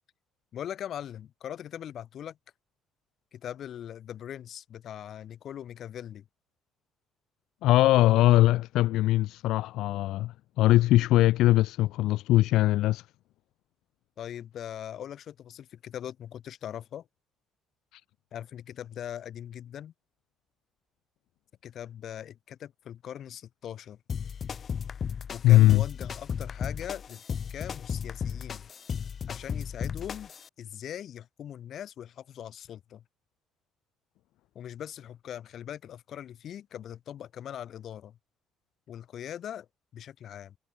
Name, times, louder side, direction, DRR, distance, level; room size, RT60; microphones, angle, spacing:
voice 1, 0.5-2.4 3.3-6.3 14.2-17.1 18.3-19.9 21.6-24.0 25.3-28.7 29.3-30.3 30.6-33.0 34.5-38.2 38.9-39.7 39.9-40.6, left 10 dB, 60° left, 1.0 m, -41 dB
voice 2, 7.6-13.1 17.9-18.0 25.4-25.8, left 16 dB, 80° left, 0.4 m, -21 dB
sound 1, 24.1-30.5, left 7 dB, 45° left, 2.3 m, -35 dB
cardioid pair, 95°, 0 cm